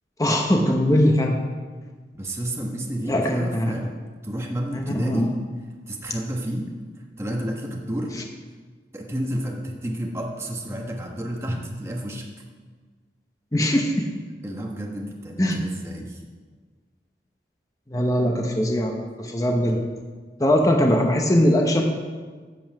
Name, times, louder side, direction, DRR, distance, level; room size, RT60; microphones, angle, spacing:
voice 1, 0.2-1.4 3.0-3.7 4.7-5.4 13.5-14.1 15.4-15.6 17.9-19.8 20.4-21.8, equal, 20° left, 2 dB, 0.9 m, -21 dB
voice 2, 2.1-3.9 4.2-5.3 5.9-6.7 7.2-8.1 8.9-12.3 14.4-16.2, equal, 15° right, 0 dB, 1.2 m, -30 dB
11.0 x 5.6 x 7.6 m, 1.5 s
head